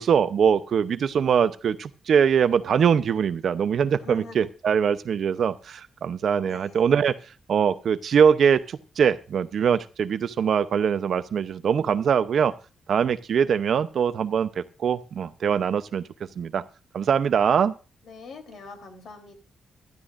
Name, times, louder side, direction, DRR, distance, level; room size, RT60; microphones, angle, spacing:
voice 1, 0.0-7.2 7.5-12.5 12.9-16.0 16.4-16.6 16.9-17.7, right 7 dB, 55° right, 12 dB, 0.8 m, -22 dB
voice 2, 4.0-4.5 6.4-7.0 18.0-19.3, left 3 dB, 65° left, 5 dB, 3.6 m, -44 dB
17.0 x 12.5 x 2.6 m, 0.34 s
wide cardioid pair, 150°, 0 cm